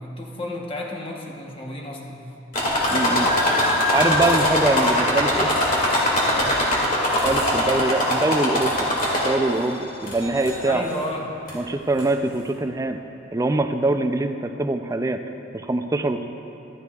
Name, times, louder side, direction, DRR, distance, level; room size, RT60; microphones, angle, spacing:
voice 1, 0.0-2.3 6.3-6.7 10.6-11.4, left 1 dB, 25° left, -1 dB, 1.0 m, -32 dB
sound 1, 2.5-9.6 10.1-10.7 11.5-11.6 12.0-12.1, left 1 dB, 45° left, 2.0 m, -21 dB
voice 2, 2.9-3.3 3.9-5.5 7.2-8.8 9.2-10.9 11.5-13.0 13.3-15.2 15.5-16.3, right 2 dB, 15° right, 7 dB, 0.3 m, -23 dB
14.0 x 13.0 x 2.3 m, 3.0 s
head